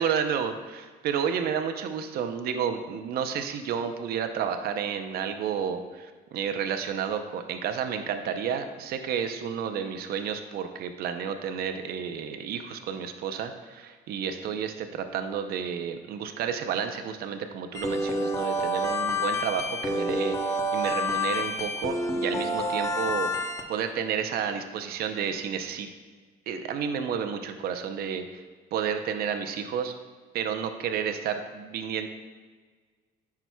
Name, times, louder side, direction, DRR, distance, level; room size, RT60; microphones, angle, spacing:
voice 1, 0.0-23.3 23.7-25.9 26.5-28.4 28.7-29.9 30.3-32.1, right 7 dB, 65° right, 7 dB, 0.6 m, -31 dB
sound 1, 17.7-23.6, left 1 dB, 20° left, 0.8 m, -28 dB
9.2 x 5.8 x 2.2 m, 1.4 s
cardioid pair, 110°, 17 cm